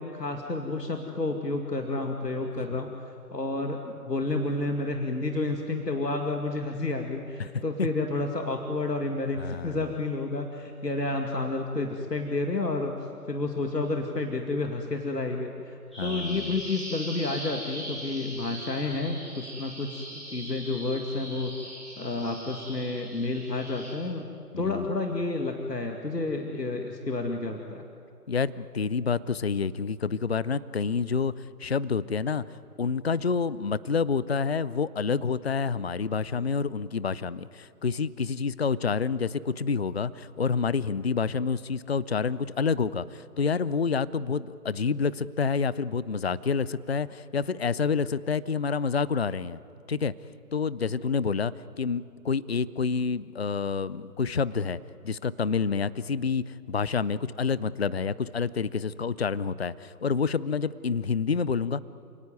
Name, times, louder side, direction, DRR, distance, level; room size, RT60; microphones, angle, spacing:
voice 1, 0.0-12.9 13.3-21.5 22.0-24.3 24.6-27.8, left 2 dB, 85° left, 3 dB, 2.3 m, -30 dB
voice 2, 9.4-9.8 16.0-16.5 24.5-24.9 28.3-32.4 32.8-49.6 49.9-50.1 50.5-54.8 55.0-61.8, left 5 dB, 40° left, 18 dB, 0.5 m, -28 dB
Bird vocalization bird call bird song, 15.9-23.9, equal, ahead, 0.8 m, -41 dB
28.5 x 18.5 x 9.3 m, 2.7 s
figure-of-eight pair, 145°, 48 cm